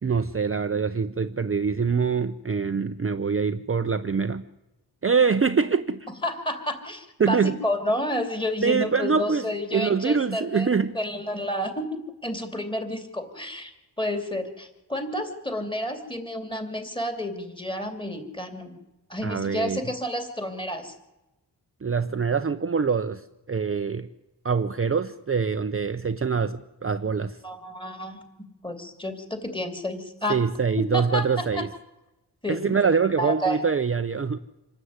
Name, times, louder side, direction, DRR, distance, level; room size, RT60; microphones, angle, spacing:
voice 1, 0.0-4.4 5.0-6.1 7.2-7.6 8.6-9.5 9.7-10.9 19.2-19.8 21.8-24.1 24.4-27.4 30.3-31.7 32.5-34.4, right 5 dB, 35° right, 0.6 m, -24 dB
voice 2, 6.2-11.8 12.2-13.7 14.0-18.8 19.1-20.9 27.4-28.2 28.6-30.4 30.9-31.3 31.6-31.7 32.4-32.8 33.2-33.6, left 1 dB, 10° left, 2.9 m, -30 dB
26.5 x 13.0 x 9.5 m
wide cardioid pair, 140°, 41 cm